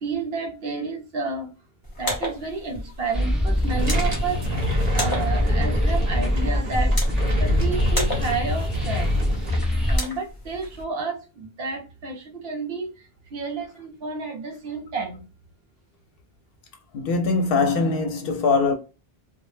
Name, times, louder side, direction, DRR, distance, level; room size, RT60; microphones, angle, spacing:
voice 1, 0.0-1.5 2.0-9.1 9.9-15.2, right 4 dB, 70° right, 0.9 m, -31 dB
sound 1, 1.8-10.8, left 1 dB, 20° left, 0.9 m, -35 dB
sound 2, 3.1-10.0, left 1 dB, ahead, 0.3 m, -24 dB
sound 3, 3.5-9.6, left 1 dB, 45° right, 0.6 m, -28 dB
voice 2, 16.9-18.7, left 4 dB, 65° left, 0.7 m, -22 dB
2.1 x 2.0 x 3.1 m
omnidirectional pair, 1.1 m